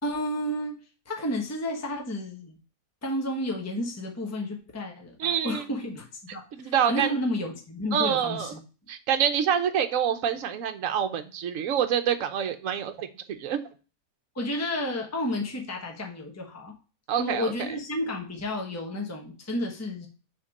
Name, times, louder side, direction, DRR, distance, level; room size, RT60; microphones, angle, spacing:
voice 1, 0.0-0.8 1.1-2.6 3.0-6.1 6.3-8.6 14.3-16.7 17.2-20.1, left 1 dB, 10° left, 1 dB, 1.0 m, -31 dB
voice 2, 5.2-5.6 6.5-7.1 7.9-8.5 8.9-13.1 13.4-13.7 17.1-17.8, right 8 dB, 65° right, 8 dB, 1.1 m, -26 dB
6.3 x 3.6 x 5.2 m, 0.34 s
omnidirectional pair, 1.5 m